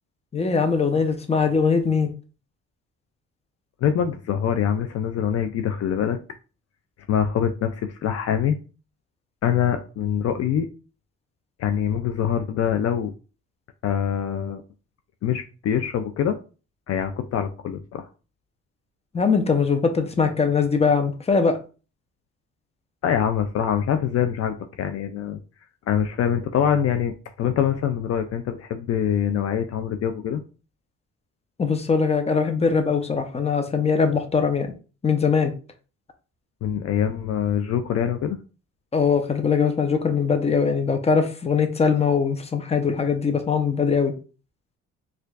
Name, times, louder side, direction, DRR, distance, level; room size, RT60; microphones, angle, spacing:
voice 1, 0.3-2.1 19.1-21.6 31.6-34.7 35.0-35.5 38.9-44.1, left 5 dB, 20° left, 0.7 m, -21 dB
voice 2, 3.8-6.2 7.1-8.6 9.4-10.7 11.6-13.1 13.8-14.6 15.2-16.4 16.9-18.1 23.0-25.4 25.9-30.4 36.6-38.4, left 9 dB, 55° left, 0.4 m, -24 dB
4.4 x 2.4 x 2.4 m
cardioid pair, 90°, 30 cm